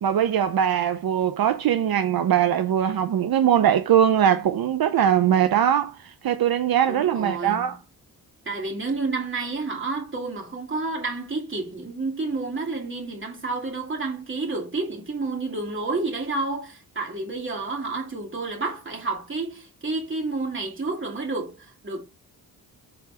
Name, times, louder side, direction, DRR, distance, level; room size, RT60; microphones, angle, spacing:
voice 1, 0.0-7.8, right 9 dB, 70° right, 0.8 m, -21 dB
voice 2, 6.9-7.7 8.5-22.0, right 3 dB, 30° right, 2.6 m, -30 dB
7.3 x 4.1 x 3.5 m
wide cardioid pair, 105°, 37 cm